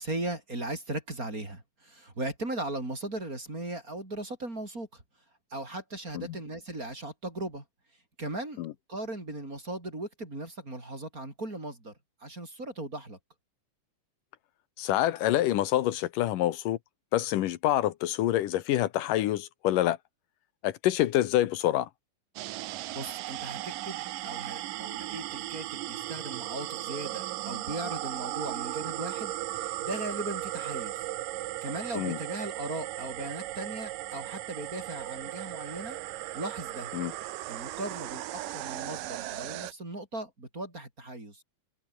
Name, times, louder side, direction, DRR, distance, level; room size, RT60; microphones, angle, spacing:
voice 1, 0.0-5.0 5.5-7.6 8.2-11.9 12.2-13.2 22.9-31.1 31.6-36.0 36.3-36.9 37.5-41.4, right 2 dB, 25° right, 6.5 m, -38 dB
voice 2, 14.8-16.8 17.1-20.0 20.6-21.9 32.0-32.2 36.9-37.1, left 14 dB, 80° left, 2.6 m, -26 dB
sound 1, 22.4-39.7, right 16 dB, 85° right, 2.6 m, -37 dB
omnidirectional pair, 3.8 m